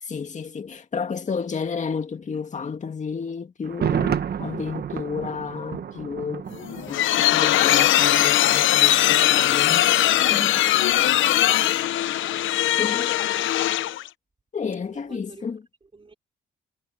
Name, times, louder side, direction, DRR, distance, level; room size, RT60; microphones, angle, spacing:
voice 1, 0.0-6.5 6.9-9.9 10.3-10.6 12.8-13.6 14.5-15.6, left 5 dB, 35° left, 2.1 m, -31 dB
Thunder, 3.6-7.6 7.8-7.9, right 8 dB, 55° right, 1.6 m, -30 dB
sound 1, 6.5-14.1, left 13 dB, 75° left, 0.9 m, -20 dB
voice 2, 11.1-12.3 14.9-16.1, right 3 dB, 25° right, 5.6 m, -51 dB
cardioid pair, 90°, 20 cm